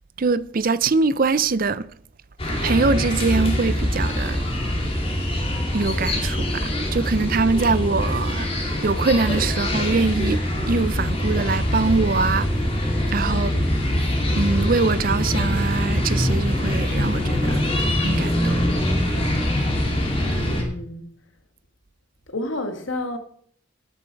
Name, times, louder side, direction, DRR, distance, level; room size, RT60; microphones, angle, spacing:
voice 1, 0.2-1.9 2.6-4.4 5.7-8.5 8.8-12.7 13.1-13.6 14.3-17.6 18.0-18.6, right 4 dB, 45° right, 0.5 m, -23 dB
sound 1, 2.4-20.6, left 1 dB, 30° left, 2.6 m, -23 dB
voice 2, 20.2-21.1 22.3-23.2, left 1 dB, 75° left, 1.7 m, -30 dB
12.5 x 9.1 x 4.6 m
head